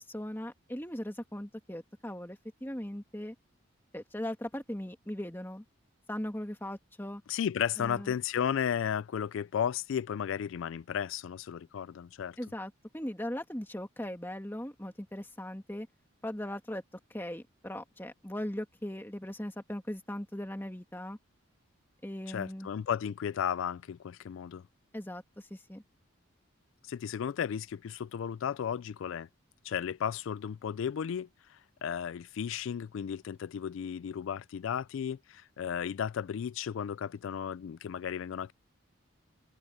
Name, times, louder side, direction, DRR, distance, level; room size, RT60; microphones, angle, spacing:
voice 1, 0.0-3.4 3.9-5.6 6.1-7.2 7.8-8.1 12.4-15.9 16.2-16.8 17.1-21.2 22.0-22.7 24.9-25.8, left 1 dB, 10° left, 1.9 m, -39 dB
voice 2, 7.3-12.4 22.3-24.6 26.8-29.3 29.6-38.5, left 8 dB, 70° left, 0.3 m, -34 dB
open air
head